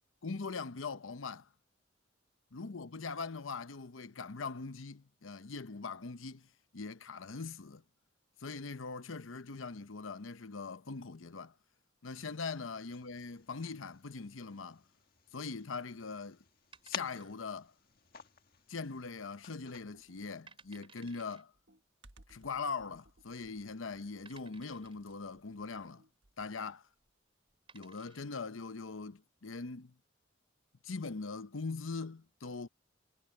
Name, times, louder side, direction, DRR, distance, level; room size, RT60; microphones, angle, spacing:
voice 1, 0.2-1.5 2.5-6.5 6.7-7.8 8.4-11.5 12.0-14.8 15.3-16.4 16.8-17.7 18.7-21.5 22.3-26.0 26.4-26.8 27.7-29.9 30.8-32.7, left 4 dB, 90° left, 0.9 m, -41 dB
sound 1, 12.0-19.8, left 7 dB, 50° left, 1.6 m, -51 dB
sound 2, 16.7-17.7 17.9-18.0 18.7-19.1 19.4-19.5 20.1-20.2 20.5-21.4 22.5-22.6 23.3-23.4 24.3-25.1 26.9-27.1 27.5-28.4, right 5 dB, 25° right, 5.2 m, -59 dB
Computer keyboard, 19.8-26.7, right 1 dB, 65° right, 1.5 m, -64 dB
head